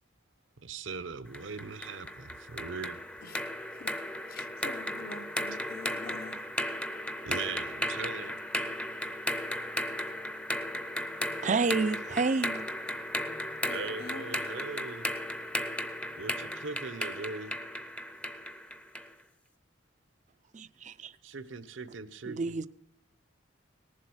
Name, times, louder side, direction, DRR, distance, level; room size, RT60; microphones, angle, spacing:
voice 1, 0.6-3.0 7.2-8.4 13.7-15.1 16.2-17.5 21.2-22.6, right 4 dB, 75° right, 0.9 m, -40 dB
sound 1, 1.3-19.1, left 1 dB, 5° left, 0.6 m, -35 dB
voice 2, 4.3-6.5 13.7-14.6, left 3 dB, 50° left, 0.7 m, -46 dB
voice 3, 11.4-12.7 20.5-21.1 22.3-22.7, right 4 dB, 35° right, 0.4 m, -29 dB
18.5 x 7.5 x 6.3 m
head